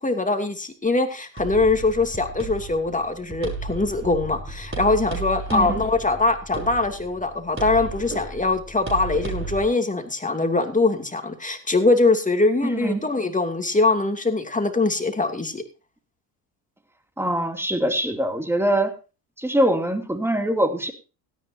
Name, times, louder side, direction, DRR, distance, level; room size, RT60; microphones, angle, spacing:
voice 1, 0.0-15.6, left 3 dB, 15° left, 6 dB, 2.7 m, -22 dB
sound 1, 1.4-9.6, right 3 dB, 25° right, 5.7 m, -34 dB
voice 2, 12.6-13.0 17.2-18.9 19.4-20.9, right 1 dB, 5° right, 6 dB, 2.7 m, -23 dB
17.0 x 13.5 x 2.8 m, 0.31 s
hypercardioid pair, 60°, 49 cm